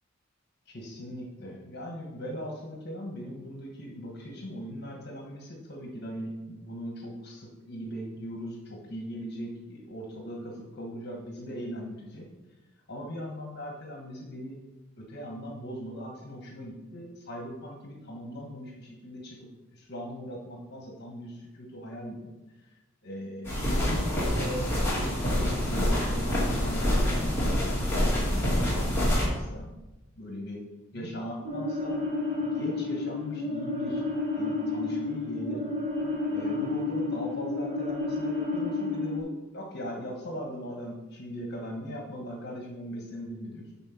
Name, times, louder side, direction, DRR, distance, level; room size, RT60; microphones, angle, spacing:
voice 1, 0.7-12.3 12.9-14.6 15.0-22.3 22.6-28.2 28.5-29.7 30.1-30.6 30.9-32.0 32.4-34.0 34.4-35.7 36.3-43.7, equal, 55° left, 0 dB, 1.4 m, -39 dB
sound 1, 23.4-29.3, equal, 10° left, 2.4 m, -26 dB
sound 2, 31.4-39.2, left 3 dB, 30° right, 1.3 m, -31 dB
9.0 x 4.2 x 5.9 m, 1.1 s
head